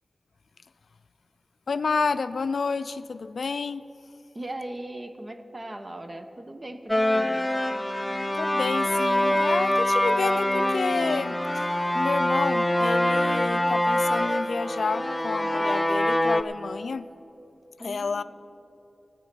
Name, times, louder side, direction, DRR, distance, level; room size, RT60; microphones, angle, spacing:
voice 1, 1.7-3.8 8.4-11.6 11.9-17.1 17.8-18.2, left 4 dB, 90° left, 13 dB, 0.3 m, -29 dB
voice 2, 4.3-7.5 17.8-18.2, right 1 dB, 30° right, 7 dB, 0.9 m, -39 dB
Drama Song, 6.9-16.4, left 1 dB, 15° left, 0.5 m, -24 dB
16.5 x 8.8 x 6.0 m, 3.0 s
wide cardioid pair, 90°, 0 cm